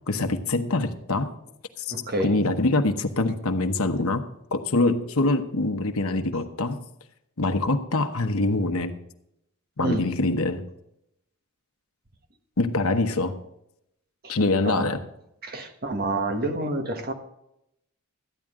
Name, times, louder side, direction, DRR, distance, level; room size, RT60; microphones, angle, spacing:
voice 1, 0.1-1.3 1.8-1.9 2.2-4.2 4.5-6.8 7.4-8.9 9.8-10.6 12.6-13.3 14.3-15.0, left 2 dB, 70° left, 7 dB, 1.1 m, -24 dB
voice 2, 1.9-2.4 9.8-10.1 14.2-14.3 14.6-14.9 15.4-17.1, right 1 dB, 45° right, 5 dB, 1.4 m, -28 dB
14.0 x 10.5 x 3.7 m, 0.80 s
head